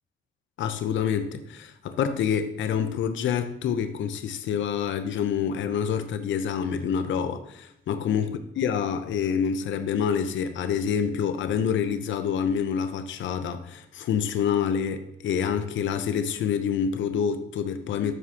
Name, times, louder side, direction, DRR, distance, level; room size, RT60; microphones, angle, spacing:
voice 1, 0.6-18.1, left 7 dB, 70° left, 0.7 m, -27 dB
12.5 x 4.8 x 2.9 m
cardioid pair, 90°, 20 cm